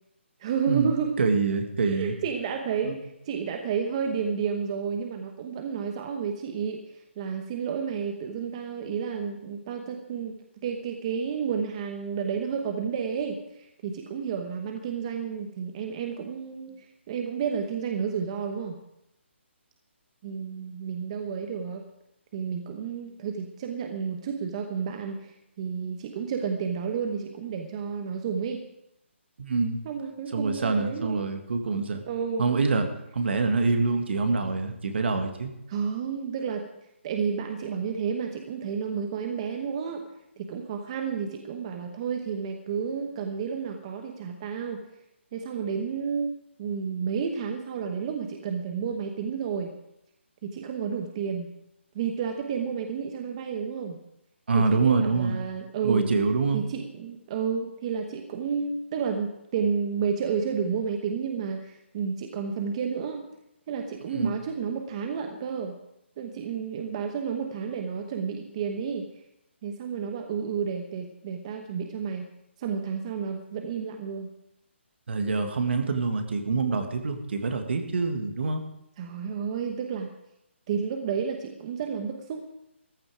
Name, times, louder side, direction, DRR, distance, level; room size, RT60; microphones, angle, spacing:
voice 1, 0.4-1.1 1.8-18.8 20.2-21.8 22.3-28.6 29.8-31.2 32.1-32.5 35.7-36.7 37.0-40.0 40.4-44.9 45.3-49.7 50.4-51.5 51.9-54.0 54.5-56.1 56.5-63.2 63.7-65.8 66.2-69.1 69.6-72.3 72.6-74.3 79.0-80.1 80.7-82.5, right 6 dB, 30° right, 4 dB, 1.0 m, -31 dB
voice 2, 1.2-2.2 2.8-2.9 29.4-29.8 30.3-32.0 32.4-32.9 33.1-35.5 54.5-55.4 55.8-56.6 64.1-64.4 75.1-78.6, right 4 dB, 60° right, 6 dB, 2.0 m, -25 dB
14.5 x 12.0 x 5.0 m, 0.82 s
hypercardioid pair, 165°, 7 cm